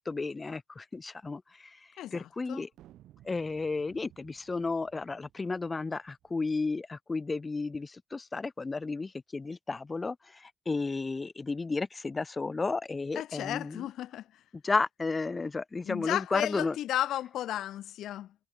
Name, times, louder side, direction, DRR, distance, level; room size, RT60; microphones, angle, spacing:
voice 1, 0.0-2.7 3.2-13.9 14.6-16.8, left 3 dB, 25° left, 0.4 m, -33 dB
voice 2, 2.0-2.7 13.2-14.4 15.9-18.3, left 12 dB, 80° left, 0.5 m, -34 dB
sound 1, 2.7-6.4, right 13 dB, 85° right, 7.8 m, -59 dB
cardioid pair, 90°, 0 cm